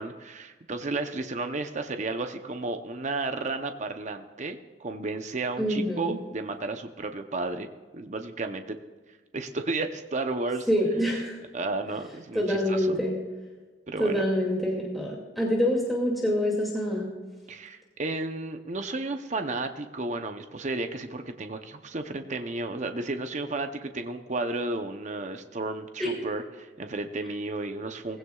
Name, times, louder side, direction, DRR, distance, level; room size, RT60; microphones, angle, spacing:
voice 1, 0.0-7.7 7.9-8.8 9.3-10.7 11.5-13.0 13.9-14.3 17.5-28.2, right 2 dB, 40° right, 7 dB, 0.8 m, -33 dB
voice 2, 5.6-6.1 10.7-11.4 12.3-13.2 14.0-17.1 26.0-26.1, equal, ahead, -3 dB, 2.4 m, -26 dB
19.5 x 16.0 x 2.4 m, 1.3 s
head